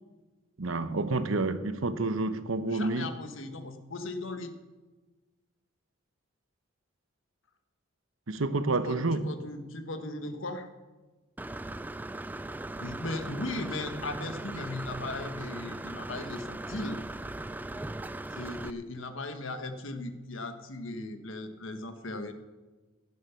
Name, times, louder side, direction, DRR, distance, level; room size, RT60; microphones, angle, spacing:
voice 1, 0.6-3.1 8.3-9.3, right 2 dB, 90° right, 0.9 m, -29 dB
voice 2, 2.7-4.5 8.8-10.7 12.8-17.0 17.4-17.5 18.3-22.3, left 2 dB, 80° left, 1.3 m, -37 dB
Engine / Mechanisms, 11.4-18.7, right 2 dB, 10° right, 0.3 m, -39 dB
15.5 x 9.6 x 5.8 m
head